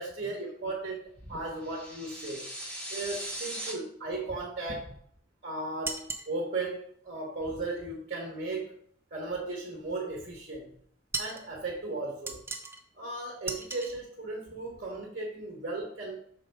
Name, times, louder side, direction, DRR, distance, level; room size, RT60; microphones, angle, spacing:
voice 1, 0.0-2.5 2.9-5.0 5.4-8.8 9.1-10.7 11.2-12.4 12.9-16.2, right 2 dB, 45° right, -1 dB, 1.2 m, -36 dB
sound 1, 1.6-3.7, right 1 dB, 5° left, 1.0 m, -39 dB
sound 2, 5.8-6.3 11.1-11.5 12.3-12.8 13.5-14.0, right 3 dB, 10° right, 0.5 m, -36 dB
6.2 x 4.0 x 4.6 m, 0.62 s
head